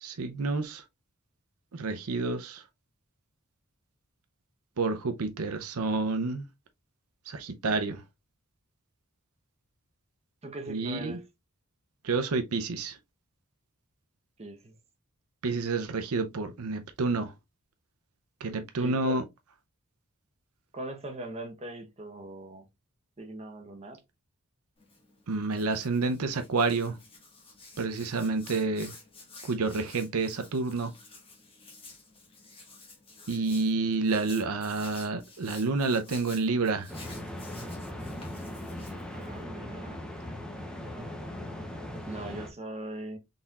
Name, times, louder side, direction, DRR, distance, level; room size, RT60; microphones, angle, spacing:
voice 1, 0.0-0.8 1.7-2.6 4.8-6.4 7.3-8.0 10.7-11.2 12.0-13.0 15.4-17.3 18.4-19.2 25.3-27.0 27.8-28.9 29.4-30.9 33.3-36.9, right 3 dB, 70° right, 0.6 m, -29 dB
voice 2, 10.4-11.3 14.4-14.7 18.8-19.2 20.7-22.7 23.2-24.0 39.1-40.1 40.8-41.3 42.0-43.2, right 1 dB, 30° right, 0.9 m, -40 dB
Hands, 24.8-39.4, left 3 dB, 25° left, 1.5 m, -51 dB
sound 1, 36.9-42.5, left 1 dB, 5° left, 0.7 m, -39 dB
4.0 x 4.0 x 2.3 m
head